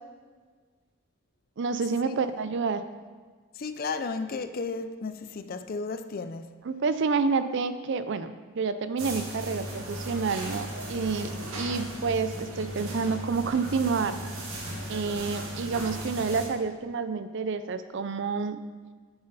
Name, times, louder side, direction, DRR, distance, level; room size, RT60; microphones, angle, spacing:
voice 1, 1.6-2.8 6.6-14.2 14.9-18.6, right 4 dB, 55° right, 0.5 m, -29 dB
voice 2, 3.5-6.5, left 4 dB, 45° left, 0.4 m, -33 dB
sound 1, 9.0-16.5, right 1 dB, 85° right, 1.8 m, -37 dB
8.7 x 8.1 x 4.0 m
head